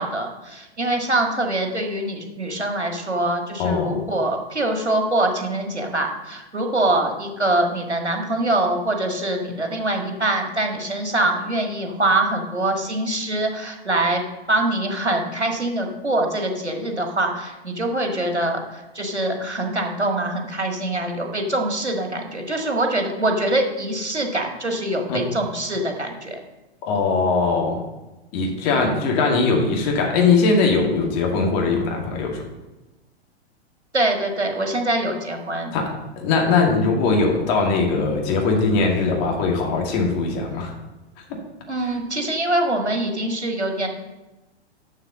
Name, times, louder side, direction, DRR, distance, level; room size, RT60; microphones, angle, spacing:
voice 1, 0.0-14.2 14.5-26.4 33.9-35.7 41.7-43.9, right 1 dB, 90° right, 3 dB, 1.7 m, -24 dB
voice 2, 3.6-4.1 25.1-25.2 26.8-27.8 28.3-32.4 35.7-35.9 36.2-40.7, left 4 dB, 40° left, 1 dB, 2.2 m, -20 dB
7.4 x 6.5 x 6.4 m, 1.1 s
figure-of-eight pair, 105°, 33 cm